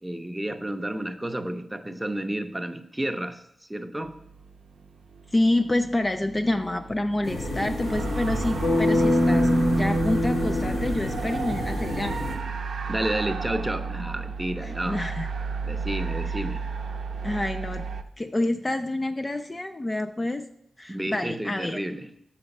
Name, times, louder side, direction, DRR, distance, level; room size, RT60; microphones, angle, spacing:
voice 1, 0.0-4.1 12.9-15.0 15.6-16.6 20.9-22.1, right 1 dB, 10° right, 7 dB, 0.6 m, -31 dB
sound 1, 4.1-18.0, right 5 dB, 85° right, 0.5 m, -34 dB
voice 2, 5.3-9.5 9.8-12.2 14.6-15.3 17.2-17.8 18.2-20.5 20.8-21.8, left 1 dB, 25° left, 7 dB, 0.4 m, -27 dB
sound 2, 7.2-12.4, left 1 dB, 80° left, 1.9 m, -31 dB
sound 3, 8.6-11.7, left 1 dB, 60° left, 1.0 m, -23 dB
6.2 x 5.8 x 5.3 m, 0.75 s
wide cardioid pair, 95°, 0 cm